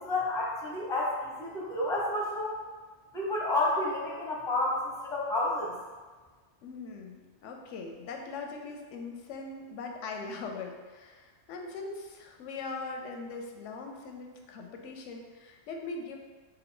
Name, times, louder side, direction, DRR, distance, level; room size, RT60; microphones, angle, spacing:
voice 1, 0.0-2.6 3.1-5.7, left 2 dB, 5° left, -4 dB, 0.5 m, -30 dB
voice 2, 6.6-16.2, left 3 dB, 90° left, 2 dB, 0.9 m, -41 dB
4.2 x 2.1 x 3.7 m, 1.4 s
omnidirectional pair, 1.2 m